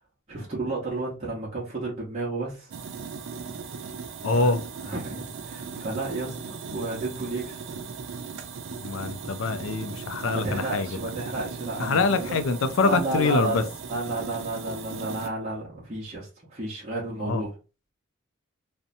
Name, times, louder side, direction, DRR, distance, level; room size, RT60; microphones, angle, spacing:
voice 1, 0.3-2.7 4.3-4.5 4.8-7.6 10.3-12.4 12.8-13.6 13.9-17.6, right 2 dB, 35° right, 0.8 m, -32 dB
sound 1, 2.7-15.3, right 5 dB, 65° right, 0.4 m, -38 dB
voice 2, 4.2-4.6 8.8-10.9 11.8-13.6 17.3-17.4, left 3 dB, 70° left, 0.4 m, -24 dB
2.7 x 2.1 x 2.6 m
head